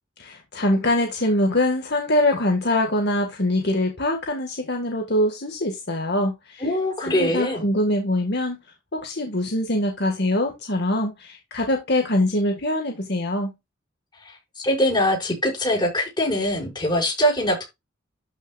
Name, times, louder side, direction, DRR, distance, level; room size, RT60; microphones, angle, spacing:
voice 1, 0.2-6.6 7.0-8.6 8.9-13.5, left 1 dB, 55° left, 1.9 m, -23 dB
voice 2, 6.6-7.6 14.2-17.6, left 1 dB, 20° left, 6.1 m, -23 dB
13.0 x 6.2 x 2.5 m
head